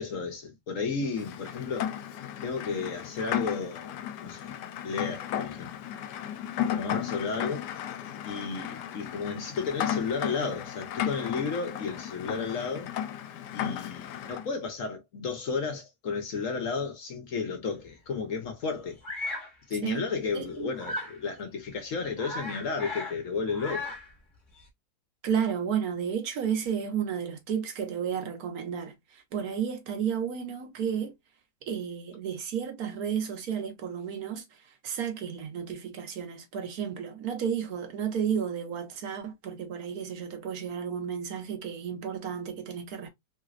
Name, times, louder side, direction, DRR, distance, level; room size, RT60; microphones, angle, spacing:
voice 1, 0.0-1.9 2.4-4.0 4.2-4.5 4.8-5.7 6.6-7.6 8.2-12.9 13.5-19.0 19.7-23.9, left 5 dB, 60° left, 1.0 m, -33 dB
Rain, 1.1-14.5, left 10 dB, 80° left, 1.2 m, -35 dB
Bird vocalization bird call bird song, 19.0-19.5 20.8-21.2 21.7-21.8 22.0-23.2 23.5-24.1, left 2 dB, 35° left, 1.1 m, -36 dB
voice 2, 20.3-20.7 25.2-31.1 31.7-43.1, right 8 dB, 70° right, 1.2 m, -32 dB
3.2 x 3.0 x 2.4 m
omnidirectional pair, 1.8 m